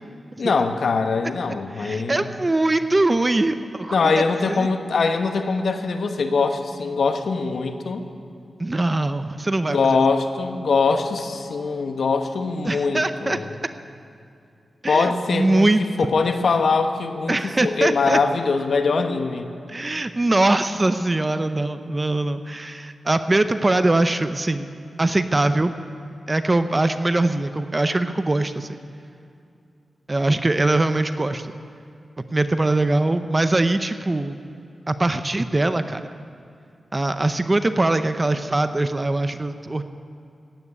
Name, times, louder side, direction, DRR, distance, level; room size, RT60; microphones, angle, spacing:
voice 1, 0.4-2.3 3.9-8.0 9.7-13.5 14.9-17.4 17.6-19.5, left 4 dB, 75° left, 6 dB, 1.2 m, -22 dB
voice 2, 1.7-4.7 8.6-9.8 12.6-13.4 14.8-15.8 17.3-18.2 19.7-24.7 25.0-25.8 26.3-28.8 30.1-31.5 32.3-34.4 34.9-36.0 36.9-39.8, right 2 dB, 30° right, 10 dB, 0.7 m, -22 dB
15.5 x 9.5 x 9.8 m, 2.5 s
cardioid pair, 70°, 0 cm